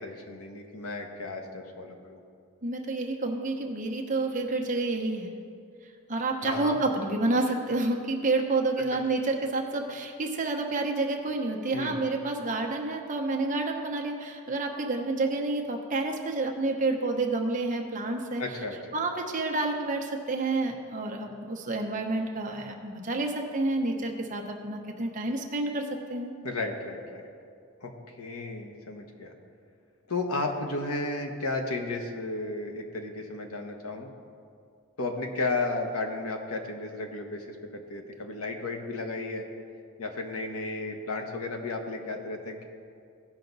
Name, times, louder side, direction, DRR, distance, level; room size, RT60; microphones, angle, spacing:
voice 1, 0.0-2.2 6.4-6.8 11.7-12.0 18.4-18.8 26.4-27.2 27.8-29.3 30.1-34.1 35.0-39.5 40.0-42.6, left 2 dB, 85° left, 3 dB, 1.1 m, -33 dB
voice 2, 2.6-5.3 6.1-18.4 18.9-26.3, right 2 dB, 35° right, 2 dB, 0.9 m, -29 dB
16.0 x 5.8 x 4.0 m, 2.3 s
head